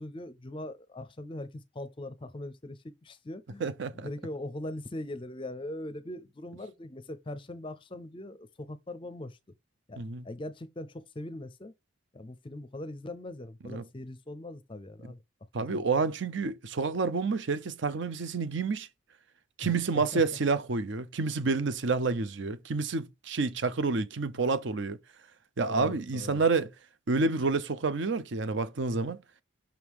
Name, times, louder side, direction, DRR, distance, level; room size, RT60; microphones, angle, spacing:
voice 1, 0.0-9.4 9.9-11.7 12.1-15.2 15.6-15.8 19.6-20.2 25.7-26.5, left 1 dB, 25° left, 0.5 m, -41 dB
voice 2, 3.6-4.1 10.0-10.2 13.7-13.8 15.5-18.9 19.6-25.0 25.6-26.7 27.1-29.2, right 4 dB, 65° right, 0.6 m, -29 dB
5.8 x 3.6 x 4.7 m
head